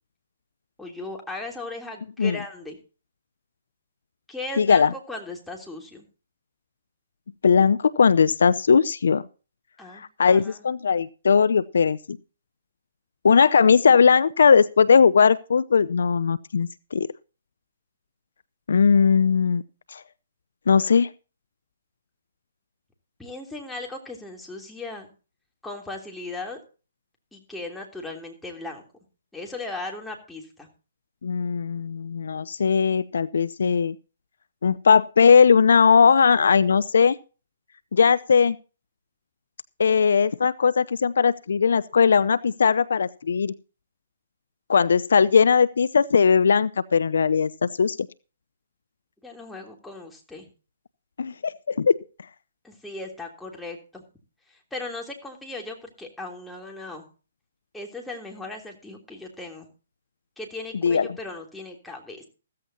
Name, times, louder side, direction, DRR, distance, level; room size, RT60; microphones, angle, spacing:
voice 1, 0.8-2.8 4.3-6.1 9.8-10.6 23.2-25.1 25.6-26.6 27.3-28.8 29.3-30.7 49.2-50.5 52.6-54.0 54.5-57.1 57.7-59.7 60.4-62.3, left 2 dB, 5° left, 3.2 m, -37 dB
voice 2, 4.6-4.9 7.4-9.2 10.0-12.2 13.2-17.1 18.7-19.6 19.9-20.0 20.7-21.1 31.2-33.9 34.6-37.2 37.9-38.6 39.8-43.5 44.7-48.0 51.2-52.0 60.8-61.1, left 6 dB, 70° left, 0.6 m, -19 dB
15.0 x 14.5 x 2.8 m
figure-of-eight pair, 135°, 0 cm